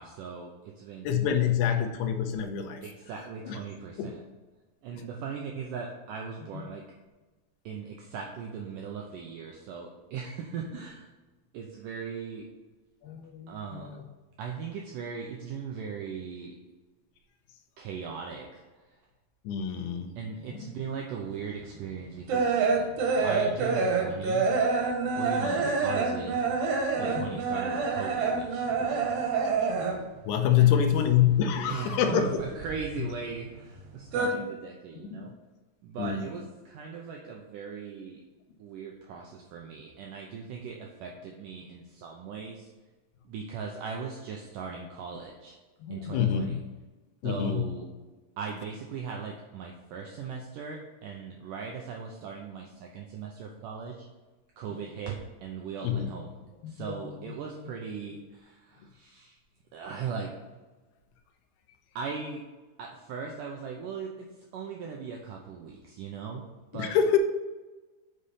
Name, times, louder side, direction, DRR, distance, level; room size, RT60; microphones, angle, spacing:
voice 1, 0.0-1.2 2.8-4.2 4.8-6.8 7.6-11.1 11.5-12.5 13.5-13.9 14.4-16.6 17.8-19.0 20.2-22.7 23.2-24.6 25.2-26.4 27.0-29.7 30.6-30.8 31.5-35.3 35.8-38.2 38.6-42.7 43.3-45.6 45.9-46.6 47.2-47.9 48.4-54.1 54.6-56.3 56.7-59.4 59.7-60.3 62.0-62.4 62.8-66.5 66.7-66.9, right 6 dB, 85° right, 1 dB, 1.9 m, -39 dB
voice 2, 1.0-2.8 3.5-3.6 4.0-4.2 13.0-14.1 19.4-20.2 20.5-20.7 27.0-27.3 30.3-32.4 34.3-34.4 35.0-35.3 36.0-36.2 45.8-46.6 47.2-47.7 54.7-54.8 55.8-56.1 56.6-57.3 66.7-67.2, left 9 dB, 80° left, 6 dB, 2.8 m, -27 dB
sound 1, 21.4-30.2 30.5-31.7 31.9-33.3 33.6-34.3, right 4 dB, 70° right, 2.7 m, -27 dB
8.3 x 5.6 x 5.5 m, 1.2 s
omnidirectional pair, 4.7 m